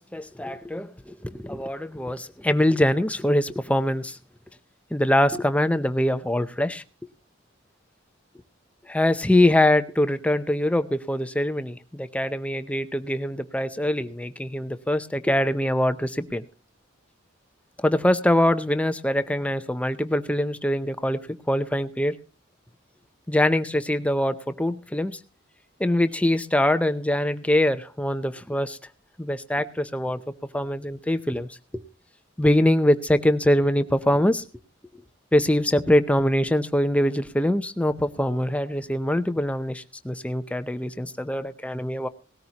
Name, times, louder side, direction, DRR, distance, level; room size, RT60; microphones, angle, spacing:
voice 1, 0.0-4.2 4.9-6.8 8.9-16.4 17.8-21.2 21.5-22.1 23.3-25.2 25.8-28.8 29.2-30.2 30.5-31.5 31.7-31.8 32.4-34.4 35.3-42.1, left 1 dB, 5° left, 10 dB, 0.6 m, -23 dB
18.5 x 13.5 x 2.9 m, 0.35 s
head